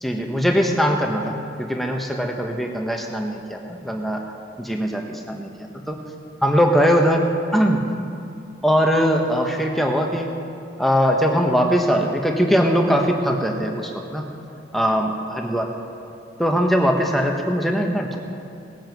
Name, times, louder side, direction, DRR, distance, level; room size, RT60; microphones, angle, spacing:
voice 1, 0.0-4.2 4.6-6.0 6.4-7.3 7.5-7.8 8.6-10.3 10.8-14.3 14.7-15.7 16.4-18.2, equal, ahead, 1 dB, 1.1 m, -21 dB
18.5 x 8.9 x 5.3 m, 2.6 s
head